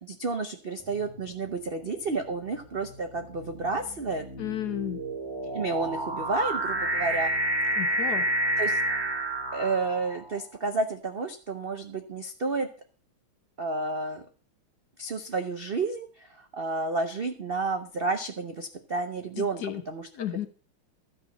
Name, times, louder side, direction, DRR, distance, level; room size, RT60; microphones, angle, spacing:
voice 1, 0.0-4.2 5.5-7.3 8.6-8.8 9.5-12.7 13.6-14.2 15.0-16.1 16.5-19.6 19.9-20.1, right 3 dB, 65° right, 6 dB, 0.5 m, -30 dB
sound 1, 0.9-1.3 2.1-10.3, right 1 dB, 20° right, 0.7 m, -30 dB
voice 2, 4.4-5.0 7.8-8.3 19.4-19.8 20.1-20.5, left 11 dB, 60° left, 10 dB, 1.3 m, -33 dB
13.0 x 5.4 x 7.1 m, 0.41 s
omnidirectional pair, 2.3 m